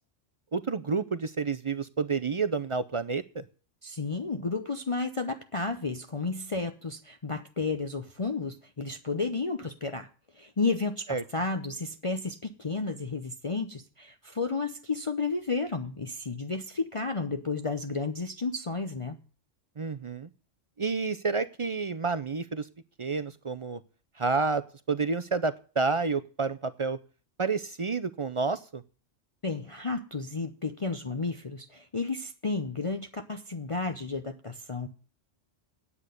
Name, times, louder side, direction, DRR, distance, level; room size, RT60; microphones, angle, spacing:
voice 1, 0.5-3.5 11.1-11.2 19.8-20.3 20.8-22.7 23.0-23.8 24.2-27.0 27.4-28.8, right 4 dB, 45° right, 0.4 m, -29 dB
voice 2, 3.8-10.1 10.4-19.2 29.4-34.9, left 3 dB, 30° left, 0.7 m, -32 dB
9.8 x 8.4 x 6.6 m
omnidirectional pair, 1.3 m